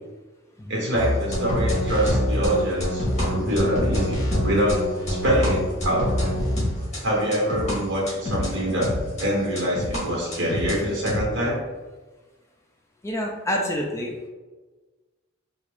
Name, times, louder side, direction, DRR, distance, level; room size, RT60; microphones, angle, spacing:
voice 1, 0.7-6.1 7.0-11.6, equal, 60° right, -3 dB, 1.2 m, -25 dB
sound 1, 1.0-7.8 8.1-10.0 10.3-11.2, left 1 dB, 35° left, 1.3 m, -25 dB
voice 2, 13.0-14.1, equal, 15° left, 0 dB, 0.3 m, -28 dB
3.5 x 2.4 x 3.4 m, 1.3 s
head